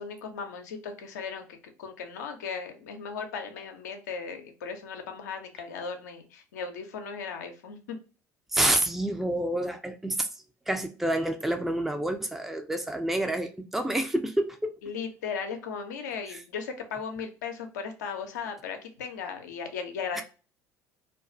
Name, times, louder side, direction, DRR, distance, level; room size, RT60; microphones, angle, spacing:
voice 1, 0.0-1.5 1.8-7.8 14.8-20.2, left 5 dB, 80° left, 0.5 m, -37 dB
voice 2, 8.5-10.3 10.7-14.7 16.3-16.4 20.2-20.3, right 1 dB, 5° right, 0.4 m, -28 dB
2.3 x 2.3 x 2.5 m
hypercardioid pair, 70°, 9 cm